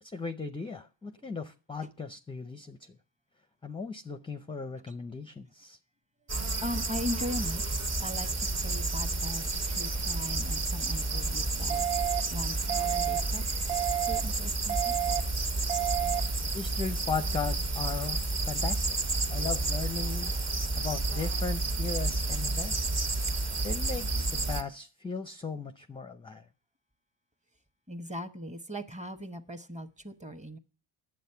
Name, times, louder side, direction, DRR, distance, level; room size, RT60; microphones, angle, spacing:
voice 1, 0.0-2.8 3.6-5.8 10.3-10.5 16.5-18.2 18.5-19.0 19.3-23.1 23.6-26.4, left 5 dB, 10° left, 0.5 m, -37 dB
sound 1, 6.3-24.6, right 2 dB, 30° right, 1.2 m, -31 dB
voice 2, 6.6-14.9 27.9-30.6, left 1 dB, 15° right, 1.0 m, -40 dB
sound 2, 11.7-12.2 12.7-13.2 13.7-14.2 14.7-15.2 15.7-16.2, right 13 dB, 50° right, 0.9 m, -30 dB
9.3 x 7.6 x 5.5 m
cardioid pair, 95°, 49 cm